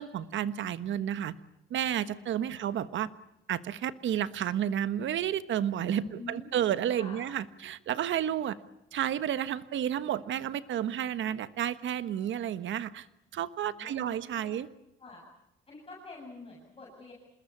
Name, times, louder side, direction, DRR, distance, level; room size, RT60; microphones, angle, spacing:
voice 1, 0.0-1.3 1.7-3.1 3.5-8.6 8.9-13.1 13.3-14.7, right 10 dB, 70° right, 14 dB, 1.3 m, -31 dB
voice 2, 5.9-7.2 13.6-14.6 15.0-15.2 15.7-17.1, left 3 dB, 30° left, -3 dB, 7.7 m, -47 dB
27.0 x 21.0 x 8.6 m, 0.84 s
cardioid pair, 90°, 20 cm